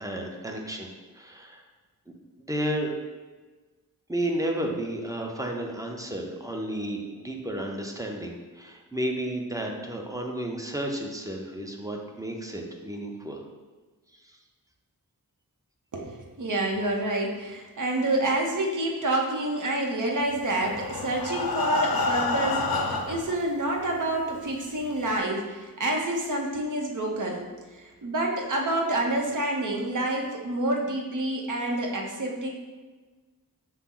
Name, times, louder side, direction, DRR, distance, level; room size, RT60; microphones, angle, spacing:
voice 1, 0.0-1.6 2.4-2.9 4.1-13.4 14.1-14.4, right 1 dB, 10° right, 1 dB, 0.5 m, -32 dB
voice 2, 15.9-27.4 27.7-32.5, right 1 dB, 60° right, 0 dB, 0.8 m, -28 dB
Breathing, 20.4-23.4 24.1-24.2 24.6-24.7 25.1-25.2, left 3 dB, 90° left, 0.6 m, -28 dB
5.6 x 2.0 x 3.7 m, 1.3 s
wide cardioid pair, 70°, 35 cm